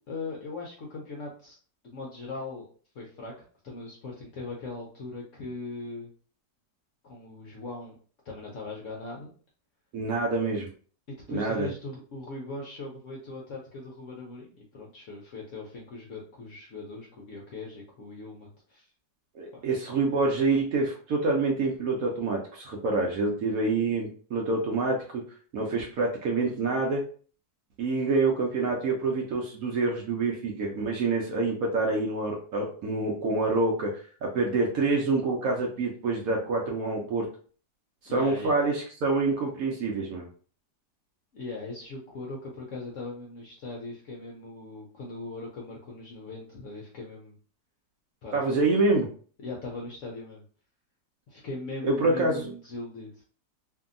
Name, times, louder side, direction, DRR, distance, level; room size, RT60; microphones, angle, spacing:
voice 1, 0.1-1.6 1.8-2.7 2.9-3.3 3.6-6.1 7.1-8.0 8.2-9.3 11.1-14.5 14.7-18.9 38.1-38.6 41.3-47.3 48.2-48.7 49.4-50.4 51.3-53.2, left 3 dB, 70° left, -2 dB, 0.7 m, -39 dB
voice 2, 9.9-10.7 11.3-11.7 19.3-25.2 25.5-27.0 27.8-37.3 38.0-40.3 48.3-49.1 51.8-52.5, right 3 dB, 70° right, 0 dB, 0.8 m, -27 dB
2.7 x 2.6 x 2.5 m, 0.43 s
omnidirectional pair, 1.9 m